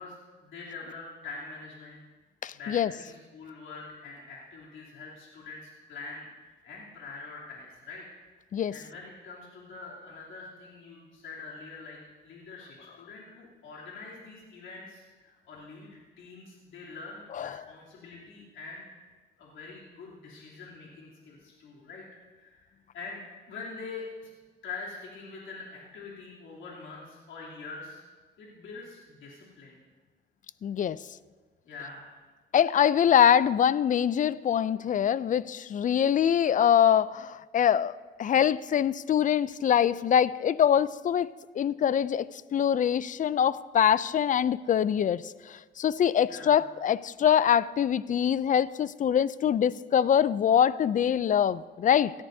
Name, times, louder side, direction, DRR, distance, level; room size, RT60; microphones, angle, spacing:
voice 1, 0.0-2.0 2.5-8.0 8.3-8.4 8.7-12.0 12.2-18.8 19.4-22.7 22.9-23.2 23.5-24.3 24.6-28.0 28.4-29.8 31.6-32.1 46.2-46.6, left 4 dB, 80° left, -5 dB, 3.1 m, -44 dB
voice 2, 2.4-2.9 8.5-8.7 17.4-17.6 30.6-31.0 32.5-41.3 41.6-52.1, left 9 dB, 40° left, 18 dB, 0.4 m, -24 dB
18.5 x 14.0 x 2.7 m, 1.4 s
cardioid pair, 90°, 20 cm